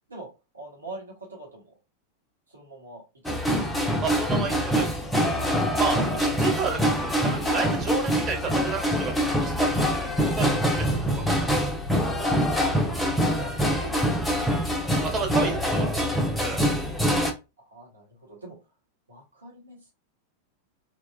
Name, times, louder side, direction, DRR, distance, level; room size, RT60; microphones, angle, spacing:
voice 1, 0.5-1.7 2.5-3.6 12.6-13.5 13.8-15.1 17.6-18.6 19.1-19.9, right 2 dB, 80° right, -2 dB, 1.0 m, -44 dB
sound 1, 3.3-17.3, equal, 5° left, 0.5 m, -25 dB
voice 2, 4.0-4.9 5.7-10.8 11.1-11.5 15.1-16.1 16.4-16.7, right 5 dB, 25° right, 2 dB, 0.9 m, -31 dB
2.9 x 2.2 x 2.3 m, 0.27 s
figure-of-eight pair, 90°, 0 cm